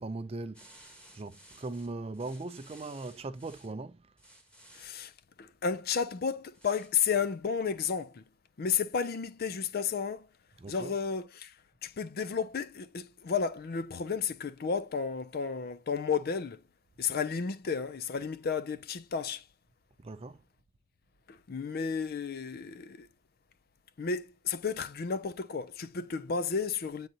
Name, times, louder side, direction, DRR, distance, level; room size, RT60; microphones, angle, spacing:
voice 1, 0.0-4.1 10.6-10.9 20.0-20.4, right 2 dB, 30° right, 0.5 m, -40 dB
sound 1, 0.5-3.7 4.2-5.1 6.5-6.9, right 1 dB, 5° left, 1.3 m, -56 dB
voice 2, 4.7-5.1 5.4-8.2 8.6-10.3 10.7-11.5 11.8-16.6 17.0-19.4 21.3-23.1 24.0-27.1, left 6 dB, 50° left, 0.4 m, -32 dB
8.7 x 3.9 x 2.8 m
head